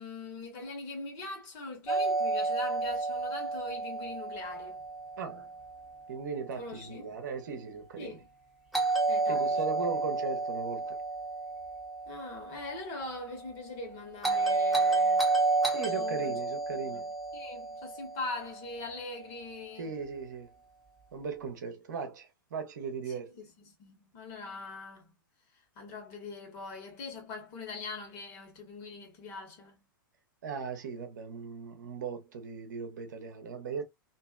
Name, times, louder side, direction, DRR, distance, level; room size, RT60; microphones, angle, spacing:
voice 1, 0.0-4.8 6.6-7.0 8.0-8.2 9.1-9.9 12.1-15.3 15.9-16.4 16.7-17.0 17.3-19.9 23.4-25.1 25.7-29.8, left 3 dB, 35° left, 1.3 m, -42 dB
Doorbell, 1.9-5.9 8.7-12.9 14.2-18.6, right 3 dB, ahead, 1.0 m, -30 dB
voice 2, 5.2-5.5 6.1-8.2 9.3-11.0 15.7-17.0 19.8-20.5 21.1-23.3 30.4-33.8, right 5 dB, 55° right, 0.9 m, -38 dB
2.9 x 2.6 x 2.3 m
figure-of-eight pair, 100°, 11 cm